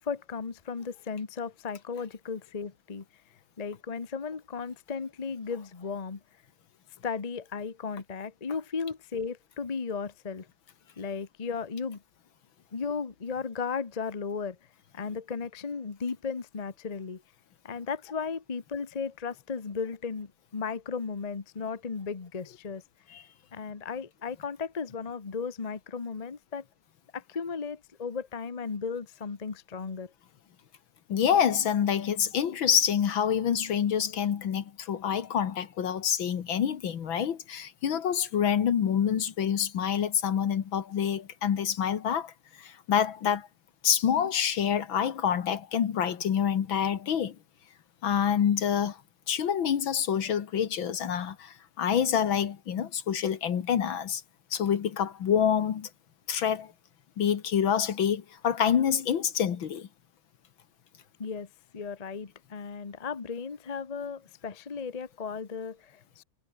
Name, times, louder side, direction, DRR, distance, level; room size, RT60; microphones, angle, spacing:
voice 1, 0.0-3.0 3.6-6.2 7.0-10.5 11.0-12.0 12.7-14.6 14.9-17.2 17.6-22.8 23.5-26.6 27.1-30.1 61.2-61.5 61.7-66.2, left 5 dB, 30° left, 0.7 m, -35 dB
voice 2, 31.1-42.3 42.6-43.5 43.8-47.4 48.0-49.0 49.3-54.2 54.5-55.9 56.3-56.7 57.2-59.9, left 8 dB, 65° left, 2.2 m, -27 dB
omnidirectional pair, 2.4 m